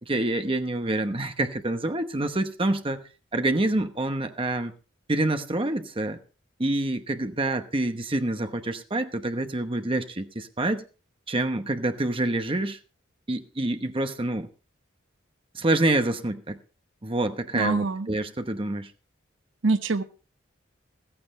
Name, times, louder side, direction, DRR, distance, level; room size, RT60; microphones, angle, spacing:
voice 1, 0.0-3.0 3.3-4.7 5.1-6.2 6.6-10.8 11.3-12.8 13.3-14.5 15.5-16.6 17.0-18.9, right 2 dB, 25° right, 7 dB, 1.0 m, -27 dB
voice 2, 17.5-18.1 19.6-20.0, right 3 dB, 75° right, 11 dB, 0.9 m, -24 dB
15.0 x 15.0 x 3.2 m, 0.35 s
head